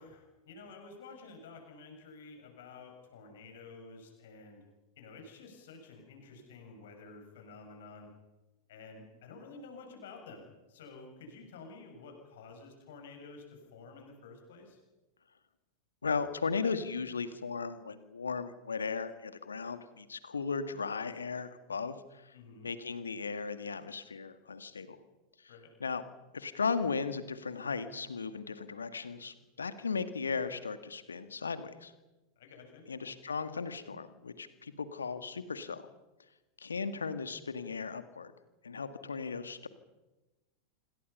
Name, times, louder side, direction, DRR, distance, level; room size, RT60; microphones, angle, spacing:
voice 1, 0.0-4.6 5.0-8.1 8.7-14.8 22.3-22.7 25.5-25.7 32.4-32.8, left 4 dB, 55° left, 3 dB, 6.6 m, -51 dB
voice 2, 16.0-25.0 25.4-25.5 25.8-26.0 26.3-31.9 32.9-35.9 36.6-38.3 38.6-39.7, left 5 dB, 75° left, 11 dB, 2.0 m, -36 dB
27.0 x 27.0 x 5.6 m, 1.1 s
figure-of-eight pair, 90°, 0 cm